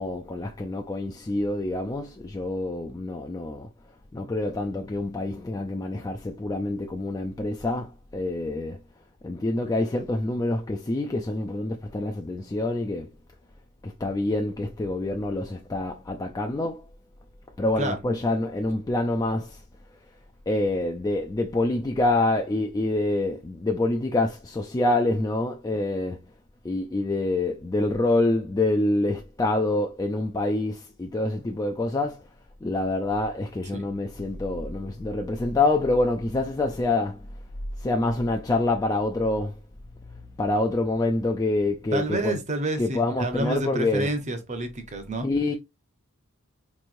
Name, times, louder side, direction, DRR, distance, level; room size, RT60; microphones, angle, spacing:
voice 1, 0.0-3.7 4.1-8.8 9.2-13.1 13.8-16.8 17.6-19.6 20.5-26.2 26.6-32.2 32.6-37.2 37.8-39.5 40.4-42.4 42.8-44.1 45.2-45.5, left 2 dB, 15° left, 0.3 m, -26 dB
voice 2, 41.9-45.3, right 1 dB, 30° right, 0.8 m, -29 dB
4.4 x 3.1 x 2.5 m
head